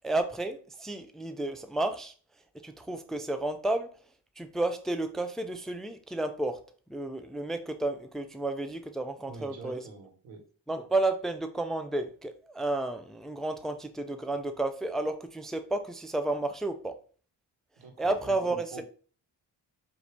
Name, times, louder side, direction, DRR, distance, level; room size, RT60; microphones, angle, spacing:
voice 1, 0.0-2.1 2.6-3.9 4.4-6.6 6.9-9.8 10.7-17.0 18.0-18.8, right 2 dB, ahead, 8 dB, 0.4 m, -31 dB
voice 2, 9.2-10.4 17.8-18.8, right 3 dB, 85° right, 3 dB, 1.1 m, -46 dB
4.8 x 2.7 x 3.3 m, 0.40 s
supercardioid pair, 50°, 45 cm